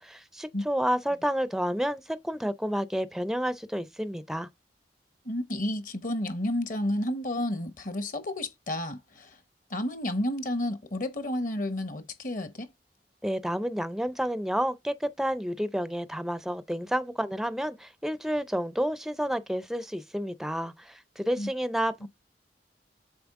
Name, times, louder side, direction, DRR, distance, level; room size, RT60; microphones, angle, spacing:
voice 1, 0.0-4.5 13.2-22.1, equal, ahead, 0.4 m, -30 dB
voice 2, 5.2-9.4 9.7-12.7 21.4-21.5 22.0-22.1, left 1 dB, 50° left, 1.0 m, -31 dB
7.0 x 4.2 x 3.6 m
head